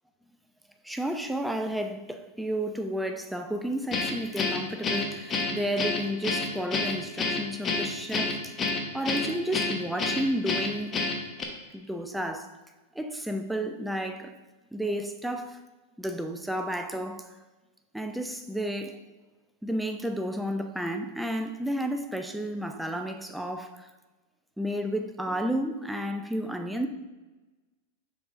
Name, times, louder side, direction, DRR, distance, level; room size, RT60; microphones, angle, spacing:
voice 1, 0.8-8.6 8.9-11.0 11.7-12.5 12.9-14.3 14.7-15.6 16.0-17.3 17.9-19.0 19.6-23.9 24.6-26.9, right 1 dB, 5° right, 0.6 m, -32 dB
Guitar, 3.9-11.4, left 3 dB, 25° left, 1.1 m, -29 dB
7.0 x 6.0 x 2.6 m
hypercardioid pair, 100°, 0 cm